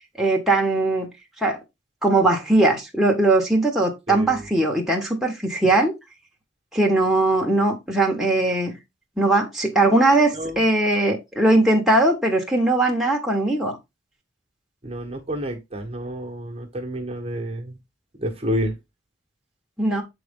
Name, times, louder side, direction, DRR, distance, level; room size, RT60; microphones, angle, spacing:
voice 1, 0.2-1.1 1.4-1.6 2.0-5.9 6.7-8.7 9.2-13.8 19.8-20.0, right 2 dB, ahead, 1.2 m, -20 dB
voice 2, 4.1-4.5 10.3-10.6 14.8-17.8 18.2-18.8, equal, 30° right, 1.2 m, -29 dB
7.5 x 3.9 x 3.6 m
head